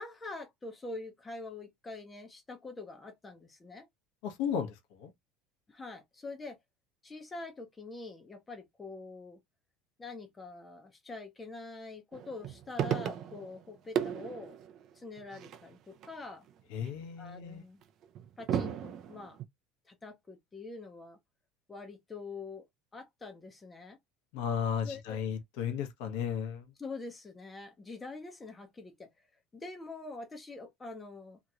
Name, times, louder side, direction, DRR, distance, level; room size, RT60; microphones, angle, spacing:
voice 1, 0.0-3.9 5.7-6.6 7.0-9.4 10.0-14.6 14.9-16.5 17.2-17.8 18.4-19.4 19.9-21.2 21.7-22.6 22.9-24.0 24.8-25.2 26.8-29.1 29.5-31.4, left 3 dB, 15° left, 0.7 m, -45 dB
voice 2, 4.2-5.1 16.7-17.6 24.3-26.7, left 8 dB, 70° left, 1.0 m, -34 dB
sound 1, 12.1-13.7 14.0-16.1 16.5-17.0 17.8-19.4, right 9 dB, 40° right, 0.4 m, -35 dB
2.9 x 2.8 x 2.4 m
cardioid pair, 165°, 0 cm